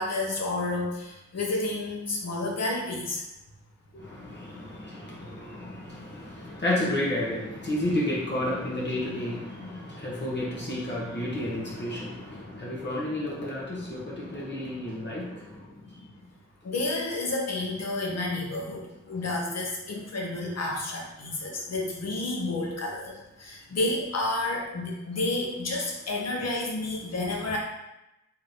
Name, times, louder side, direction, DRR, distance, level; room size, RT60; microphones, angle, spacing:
voice 1, 0.0-3.2 16.6-27.6, left 2 dB, 55° left, -1 dB, 1.0 m, -30 dB
voice 2, 3.9-16.0, left 1 dB, 35° left, -6 dB, 1.0 m, -31 dB
3.1 x 2.8 x 4.0 m, 0.94 s
cardioid pair, 85°, 30 cm